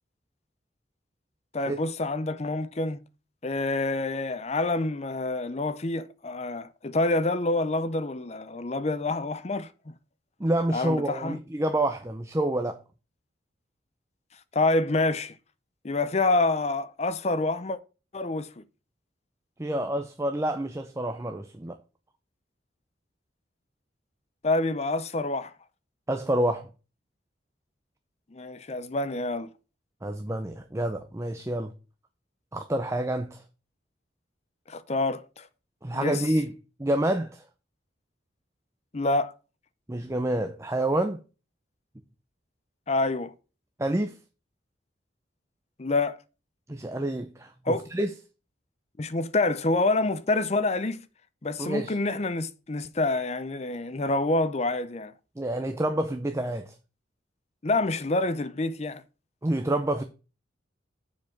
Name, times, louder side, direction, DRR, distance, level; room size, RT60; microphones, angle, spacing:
voice 1, 1.5-3.0 3.4-9.7 10.7-11.4 14.5-15.3 15.8-17.8 18.1-18.6 24.4-25.5 28.3-29.5 34.7-35.5 35.9-36.2 38.9-39.3 42.9-43.3 45.8-46.2 47.7-47.9 49.0-51.1 51.4-55.1 57.6-59.0, left 2 dB, 35° left, 0.6 m, -27 dB
voice 2, 10.4-12.8 19.6-21.8 26.1-26.7 30.0-31.7 32.5-33.4 35.8-36.5 36.8-37.4 39.9-41.2 43.8-44.2 46.7-48.1 51.6-52.0 55.4-56.7 59.4-60.0, right 1 dB, 15° right, 0.5 m, -28 dB
7.3 x 4.8 x 5.9 m
head